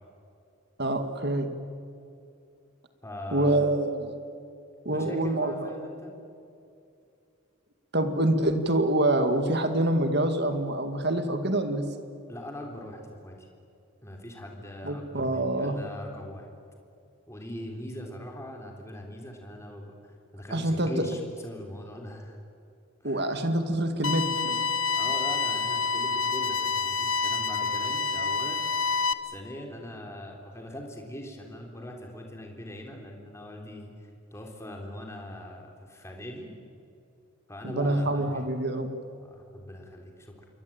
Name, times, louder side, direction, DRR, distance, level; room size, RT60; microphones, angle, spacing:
voice 1, 0.8-1.5 3.3-4.2 4.9-5.6 7.9-11.9 14.8-15.8 20.5-20.9 23.0-24.6 37.6-38.9, right 1 dB, 50° right, 8 dB, 2.1 m, -26 dB
voice 2, 3.0-3.7 4.9-6.1 12.3-13.5 14.0-16.5 17.3-22.4 23.0-23.4 25.0-36.5 37.5-38.4 39.2-40.5, left 1 dB, 15° left, 1 dB, 3.6 m, -41 dB
sound 1, 24.0-29.1, left 4 dB, 75° left, 1.1 m, -28 dB
28.0 x 23.0 x 8.9 m, 2.5 s
head